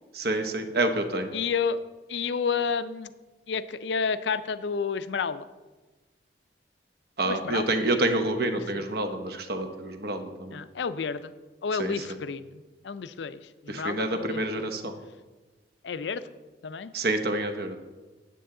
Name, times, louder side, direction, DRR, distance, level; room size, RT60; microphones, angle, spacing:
voice 1, 0.1-1.3 7.2-10.6 11.8-11.9 13.7-14.9 16.9-17.7, right 2 dB, 60° right, 7 dB, 0.9 m, -28 dB
voice 2, 1.3-1.8 2.1-3.1 3.5-5.4 7.3-7.7 8.7-8.8 10.5-11.3 11.6-14.7 15.8-16.2 16.6-16.9, left 5 dB, 80° left, 13 dB, 0.4 m, -30 dB
9.3 x 8.2 x 3.8 m, 1.2 s
head